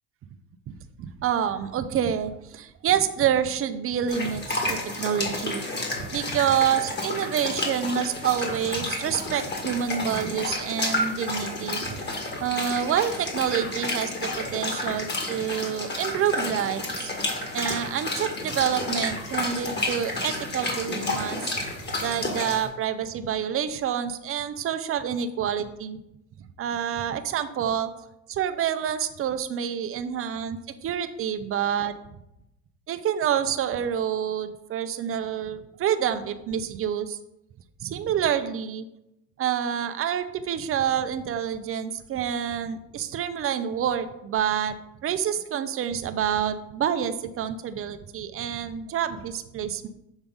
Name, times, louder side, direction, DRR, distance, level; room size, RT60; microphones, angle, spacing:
voice 1, 0.7-5.6 6.1-12.0 12.4-17.1 17.5-21.5 22.0-26.0 26.6-27.9 28.3-31.9 32.9-37.2 37.8-38.9 39.4-44.8 45.0-49.9, right 9 dB, 30° right, 10 dB, 0.6 m, -27 dB
sound 1, 4.1-22.7, left 2 dB, 25° left, 1.8 m, -31 dB
7.2 x 3.4 x 5.3 m, 0.87 s
supercardioid pair, 95°, 42 cm